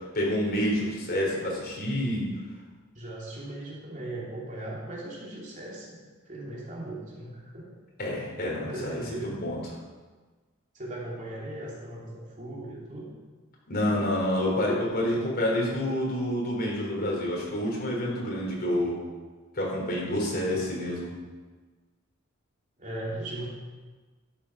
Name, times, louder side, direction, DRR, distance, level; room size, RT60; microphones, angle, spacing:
voice 1, 0.1-2.3 8.0-9.6 13.7-19.0 19.5-21.1, left 1 dB, 50° left, -3 dB, 4.1 m, -28 dB
voice 2, 2.9-7.8 8.5-9.4 10.7-13.1 20.4-20.7 22.8-23.5, right 1 dB, 40° right, -5 dB, 3.0 m, -38 dB
12.5 x 9.4 x 5.8 m, 1.3 s
head